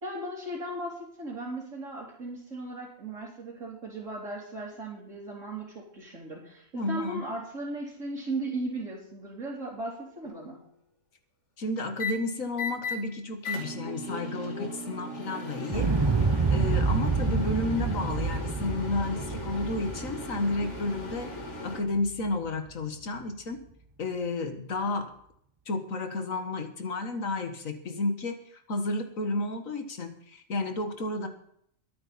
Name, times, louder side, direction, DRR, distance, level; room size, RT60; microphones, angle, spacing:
voice 1, 0.0-10.6, right 2 dB, 75° right, -9 dB, 3.8 m, -37 dB
voice 2, 6.7-7.2 11.6-15.9 16.5-21.3 21.6-23.6 24.0-25.1 25.7-31.3, left 2 dB, 85° left, 7 dB, 2.0 m, -32 dB
sound 1, 10.2-10.6 12.0-12.1 12.5-13.0 13.4-21.8, left 2 dB, 60° left, 2.4 m, -38 dB
Explosion, 15.7-21.7 22.1-22.2, right 4 dB, 30° right, 0.6 m, -28 dB
23.0 x 8.9 x 4.2 m, 0.68 s
omnidirectional pair, 1.4 m